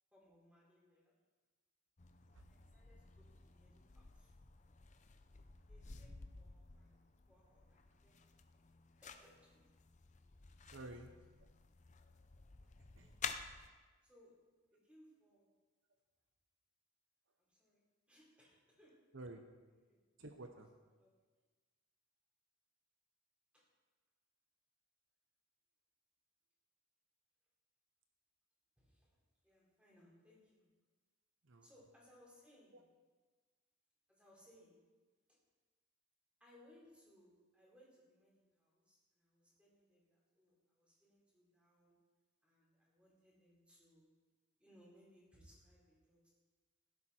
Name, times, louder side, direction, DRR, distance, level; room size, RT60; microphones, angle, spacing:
voice 1, 0.1-1.1 2.5-4.3 5.1-7.0 7.3-8.2 9.0-9.6 13.0-13.1 14.0-14.3 14.7-15.5 17.4-19.0 19.7-20.0 21.0-21.1 23.5-23.6 28.8-29.2 29.4-30.6 31.6-32.8 34.1-34.8 35.3-35.4 36.4-41.9 42.4-44.1 44.6-46.3, equal, 5° right, -5 dB, 4.2 m, -67 dB
sound 1, 2.0-13.7, left 6 dB, 35° left, 0.6 m, -52 dB
voice 2, 10.7-11.1 12.6-13.2 19.1-19.4 20.2-20.7 31.4-31.7 32.7-32.8, right 2 dB, 60° right, 6 dB, 0.8 m, -52 dB
16.5 x 11.5 x 4.4 m, 1.4 s
head